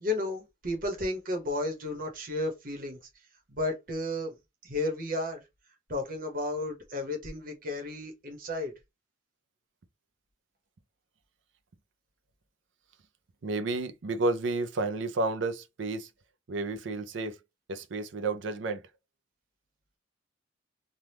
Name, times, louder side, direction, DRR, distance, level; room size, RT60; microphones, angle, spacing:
voice 1, 0.0-3.0 3.5-4.4 4.6-5.4 5.9-8.7, left 2 dB, 45° right, 1.0 m, -33 dB
voice 2, 13.4-16.1 16.5-17.4 17.7-18.9, right 3 dB, 75° right, 0.5 m, -31 dB
3.4 x 2.3 x 2.8 m
head